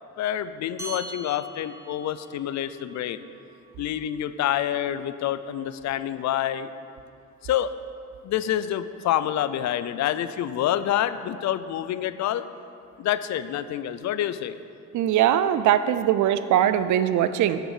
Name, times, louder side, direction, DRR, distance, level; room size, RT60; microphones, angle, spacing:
voice 1, 0.2-3.2 3.8-6.7 7.4-7.7 8.2-12.4 13.0-14.6, left 11 dB, 65° left, 13 dB, 0.5 m, -27 dB
sound 1, 0.8-5.6, right 2 dB, 10° right, 2.0 m, -44 dB
voice 2, 14.9-17.6, right 10 dB, 75° right, 12 dB, 0.5 m, -21 dB
8.2 x 6.1 x 6.6 m, 2.5 s
cardioid pair, 90°, 30 cm